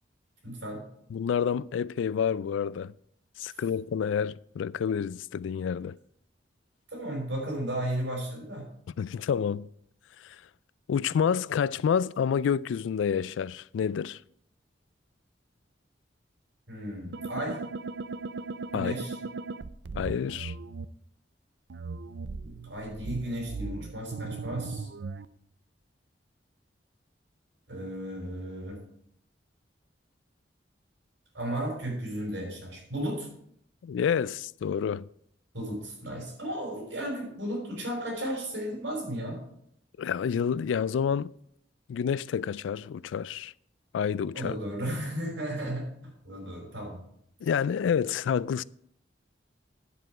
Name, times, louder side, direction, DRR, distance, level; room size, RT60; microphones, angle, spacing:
voice 1, 0.4-0.8 6.9-8.6 16.7-17.6 18.7-19.2 22.4-24.9 27.7-28.8 31.3-33.3 35.5-39.4 44.3-45.8 46.2-47.0, right 1 dB, 85° right, 5.0 m, -34 dB
voice 2, 1.1-2.9 3.4-6.0 9.0-9.7 10.2-10.4 10.9-14.2 18.7-18.9 19.9-20.5 33.8-35.0 40.0-41.3 41.9-43.5 43.9-44.6 47.4-48.6, left 7 dB, 90° left, 0.3 m, -28 dB
sound 1, 17.1-20.9 21.7-25.3, right 4 dB, 65° right, 0.5 m, -38 dB
9.8 x 7.8 x 4.6 m
head